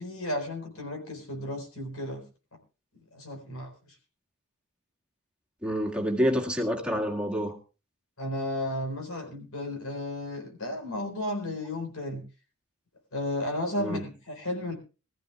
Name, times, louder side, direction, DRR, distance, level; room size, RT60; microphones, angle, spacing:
voice 1, 0.0-2.2 3.1-3.7 8.2-12.2 13.1-14.8, left 1 dB, 90° left, 4.4 m, -33 dB
voice 2, 5.6-7.6 13.8-14.0, equal, 5° right, 1.9 m, -28 dB
23.0 x 14.5 x 2.4 m
head